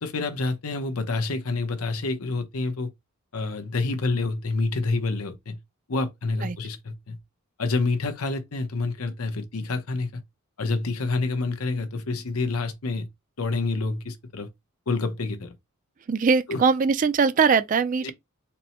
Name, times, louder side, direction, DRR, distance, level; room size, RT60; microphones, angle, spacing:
voice 1, 0.0-2.9 3.3-5.6 5.9-7.2 7.6-10.1 10.6-13.1 13.4-14.5 14.9-15.5 16.5-16.6 18.0-18.1, left 3 dB, 85° left, 0.8 m, -28 dB
voice 2, 16.1-18.1, right 5 dB, 35° right, 0.3 m, -21 dB
4.3 x 2.1 x 4.2 m
head